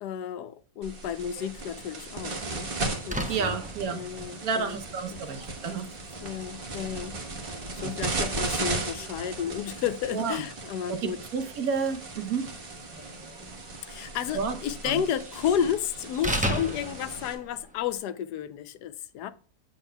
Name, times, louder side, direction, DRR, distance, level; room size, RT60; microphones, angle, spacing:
voice 1, 0.0-2.7 3.1-3.6 3.9-4.8 5.1-5.2 6.2-7.2 7.7-11.2 13.9-19.3, left 9 dB, 85° left, 1.2 m, -32 dB
Slam, 0.8-18.0, right 1 dB, 10° right, 0.4 m, -40 dB
sound 1, 0.8-17.3, right 3 dB, 40° right, 1.3 m, -37 dB
voice 2, 3.3-4.0 4.4-5.9 7.8-8.2 10.1-10.4 10.9-12.5 14.3-14.6 14.8-15.0, right 5 dB, 65° right, 1.3 m, -30 dB
8.2 x 7.1 x 2.2 m
omnidirectional pair, 1.7 m